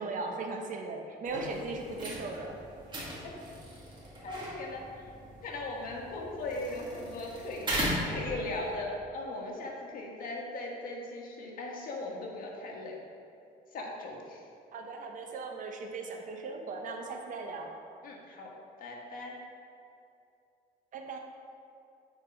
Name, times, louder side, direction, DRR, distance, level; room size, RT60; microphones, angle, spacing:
voice 1, 0.0-2.6 14.7-17.7 20.9-21.2, right 3 dB, 50° right, 2 dB, 1.0 m, -38 dB
sound 1, 1.2-8.7, equal, 25° right, 2.0 m, -38 dB
voice 2, 4.2-5.1 5.4-13.0 13.7-14.4 18.0-18.5 18.8-19.3, left 2 dB, 55° left, -1 dB, 1.7 m, -38 dB
8.1 x 4.5 x 6.0 m, 2.6 s
cardioid pair, 110°, 17 cm